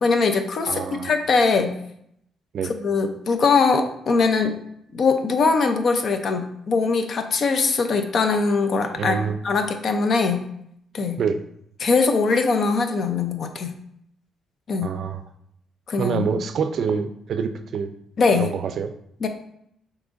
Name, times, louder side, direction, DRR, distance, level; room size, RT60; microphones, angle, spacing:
voice 1, 0.0-1.8 2.6-4.6 4.9-10.5 10.9-11.2 11.8-13.8 14.7-14.9 15.9-16.3 18.2-18.5 19.2-19.3, left 4 dB, 55° left, 7 dB, 0.5 m, -21 dB
voice 2, 0.7-1.1 2.5-2.7 9.0-9.4 11.2-11.4 14.8-15.2 16.0-17.9 18.4-18.9, right 6 dB, 60° right, 9 dB, 0.4 m, -26 dB
6.0 x 3.0 x 2.5 m, 0.73 s
cardioid pair, 90°, 0 cm